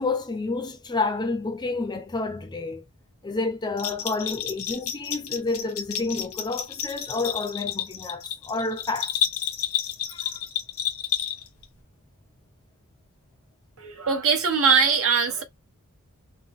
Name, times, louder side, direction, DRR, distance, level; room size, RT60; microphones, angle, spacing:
voice 1, 0.0-2.8 3.2-9.1 10.1-10.3, left 3 dB, 20° left, 0.5 m, -29 dB
Bell, 3.8-11.6, left 10 dB, 90° left, 1.3 m, -30 dB
voice 2, 13.8-15.4, right 6 dB, 70° right, 1.2 m, -21 dB
3.7 x 2.2 x 3.5 m
head